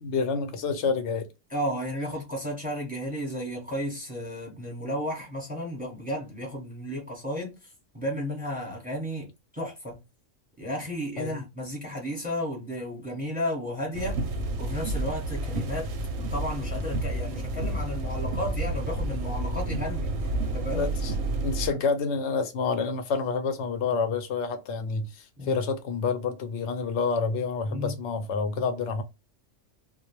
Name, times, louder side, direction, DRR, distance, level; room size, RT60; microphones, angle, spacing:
voice 1, 0.0-1.3 11.2-11.4 20.7-21.1 21.4-29.0, left 5 dB, 65° left, 0.8 m, -28 dB
voice 2, 1.5-10.0 10.6-14.2 14.6-15.9 16.2-20.9 21.7-21.8 25.4-25.6 27.7-27.9, equal, 10° right, 0.9 m, -33 dB
sound 1, 13.9-21.7, right 2 dB, 65° right, 0.8 m, -30 dB
2.3 x 2.0 x 2.9 m
omnidirectional pair, 1.3 m